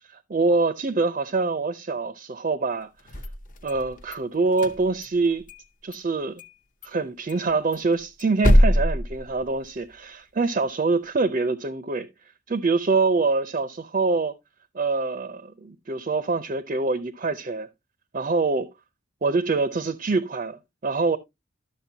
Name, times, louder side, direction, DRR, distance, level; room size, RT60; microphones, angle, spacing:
voice 1, 0.3-2.9 3.6-5.4 5.8-6.4 6.8-12.1 12.5-14.3 14.7-17.7 18.1-18.7 19.2-21.2, right 3 dB, 35° right, 0.4 m, -25 dB
sound 1, 3.0-4.2 4.5-5.6 5.9-6.0 6.4-6.5 6.8-6.9 7.3-9.9, equal, 40° left, 0.7 m, -23 dB
12.0 x 6.4 x 2.7 m
head